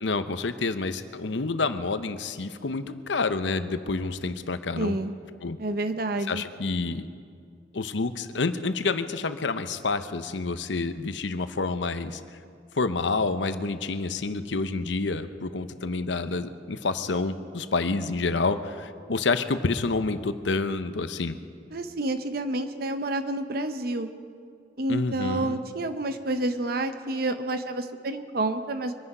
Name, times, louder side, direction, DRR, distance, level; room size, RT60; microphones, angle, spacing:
voice 1, 0.0-5.0 5.4-5.6 6.3-7.1 7.7-12.2 12.8-21.4 24.9-25.6, left 3 dB, 85° left, 11 dB, 0.8 m, -28 dB
voice 2, 4.8-5.1 5.6-6.4 21.7-24.1 24.8-28.9, right 2 dB, 55° right, 9 dB, 0.8 m, -29 dB
24.0 x 9.8 x 5.5 m, 2.3 s
head